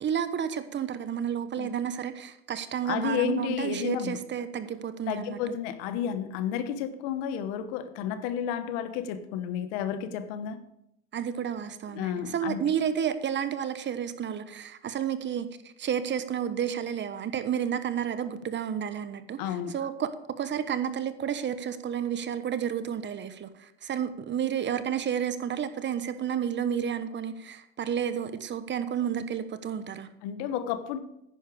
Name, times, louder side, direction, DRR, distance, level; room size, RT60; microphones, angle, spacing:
voice 1, 0.0-5.6 11.1-15.5 15.8-19.4 19.7-30.1, right 8 dB, 35° right, 11 dB, 1.1 m, -31 dB
voice 2, 2.8-4.2 5.1-10.6 11.9-12.6 19.4-19.8 30.2-31.0, left 9 dB, 75° left, 11 dB, 1.2 m, -31 dB
10.0 x 9.8 x 5.0 m, 0.81 s
supercardioid pair, 90°, 30 cm